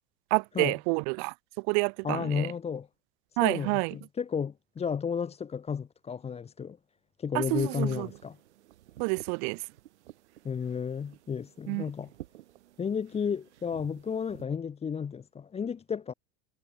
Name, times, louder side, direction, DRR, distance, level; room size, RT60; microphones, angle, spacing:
voice 1, 0.3-2.5 3.4-3.9 7.3-8.1 9.0-9.6 11.7-11.8, right 40 dB or more, 60° right, 1.1 m, -29 dB
voice 2, 2.0-2.9 3.4-6.8 7.2-8.4 10.4-12.1 12.8-16.1, left 6 dB, 20° left, 0.7 m, -32 dB
sound 1, 7.9-14.4, right 14 dB, 85° right, 1.9 m, -53 dB
hypercardioid pair, 90°, 34 cm